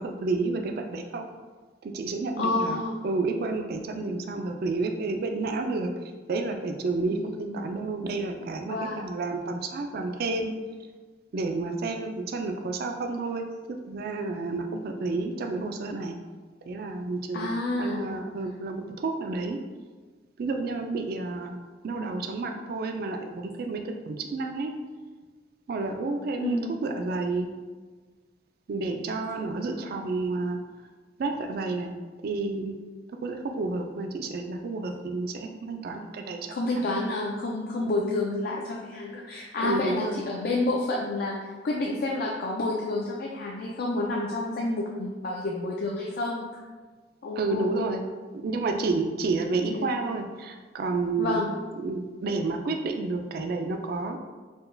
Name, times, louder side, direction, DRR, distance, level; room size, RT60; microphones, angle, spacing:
voice 1, 0.0-1.3 1.8-5.9 6.3-10.5 11.3-13.5 13.9-16.2 16.7-17.5 17.8-19.6 20.4-21.5 21.8-24.7 25.7-27.5 28.7-30.6 31.2-31.9 32.2-32.8 33.2-36.6 37.8-38.0 39.6-40.2 47.4-48.0 48.3-51.4 51.8-54.2, right 3 dB, 55° right, 5 dB, 0.3 m, -30 dB
voice 2, 2.4-3.0 7.1-7.8 8.7-9.1 17.3-18.1 26.4-26.8 36.5-41.4 41.6-46.6 47.2-47.8 49.7-49.9 51.2-51.5, left 2 dB, 55° left, -2 dB, 0.4 m, -29 dB
4.4 x 2.2 x 3.3 m, 1.4 s
head